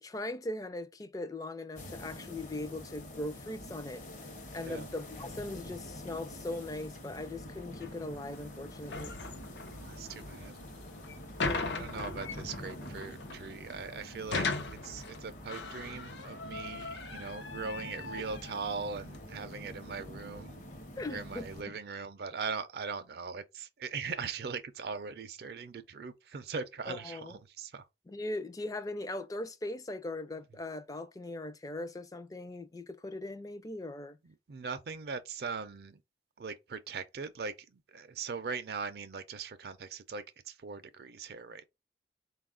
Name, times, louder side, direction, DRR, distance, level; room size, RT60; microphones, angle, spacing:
voice 1, 0.0-4.0 4.5-9.1 11.4-11.9 21.0-21.8 26.9-27.4 28.1-34.2, left 2 dB, 20° left, 0.4 m, -40 dB
sound 1, 1.8-21.6, left 1 dB, 45° left, 0.8 m, -47 dB
sound 2, 7.7-19.2, left 3 dB, 90° left, 0.6 m, -40 dB
voice 2, 9.7-10.6 11.6-14.5 14.8-20.5 21.1-27.9 34.5-36.0 36.4-41.7, right 5 dB, 60° right, 0.4 m, -40 dB
4.1 x 2.3 x 3.6 m
head